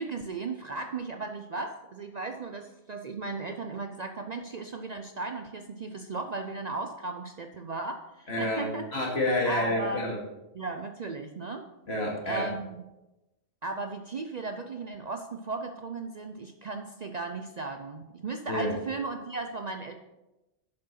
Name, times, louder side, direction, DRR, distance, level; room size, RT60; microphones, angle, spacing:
voice 1, 0.0-9.0 9.5-10.1 10.5-11.6 12.2-12.8 13.6-19.9, right 3 dB, 45° right, 5 dB, 0.6 m, -36 dB
voice 2, 8.3-10.2 11.9-12.5 18.5-18.7, left 1 dB, 60° left, -2 dB, 2.5 m, -29 dB
7.5 x 6.7 x 5.8 m, 1.0 s
omnidirectional pair, 1.2 m